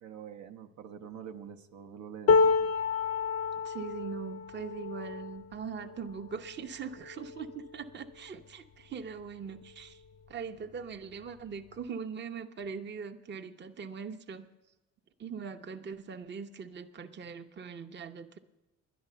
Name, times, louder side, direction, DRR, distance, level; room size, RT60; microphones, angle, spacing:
voice 1, 0.0-2.7, right 8 dB, 70° right, 5 dB, 0.8 m, -46 dB
sound 1, 2.3-8.4 9.0-9.2 9.5-10.3 11.2-11.3, left 5 dB, 55° left, 0.6 m, -30 dB
voice 2, 3.6-10.0 10.3-14.5 15.2-18.4, right 6 dB, 35° right, 5 dB, 0.7 m, -41 dB
10.5 x 10.5 x 6.7 m, 0.99 s
cardioid pair, 90°, 30 cm